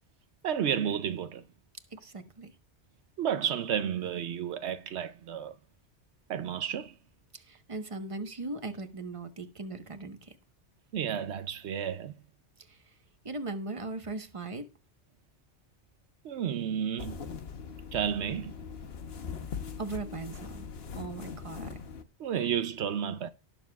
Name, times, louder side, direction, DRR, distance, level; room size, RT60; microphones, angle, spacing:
voice 1, 0.4-1.4 3.2-5.5 6.3-6.9 10.9-12.1 16.2-17.3 17.9-18.5 22.2-23.3, right 8 dB, 75° right, 0.9 m, -31 dB
voice 2, 2.0-2.5 7.3-10.3 12.7-12.8 13.2-14.6 19.8-20.7 21.0-21.8, right 3 dB, 30° right, 1.2 m, -39 dB
sound 1, 17.0-22.0, left 6 dB, 65° left, 1.2 m, -41 dB
18.5 x 6.9 x 2.3 m
omnidirectional pair, 1.2 m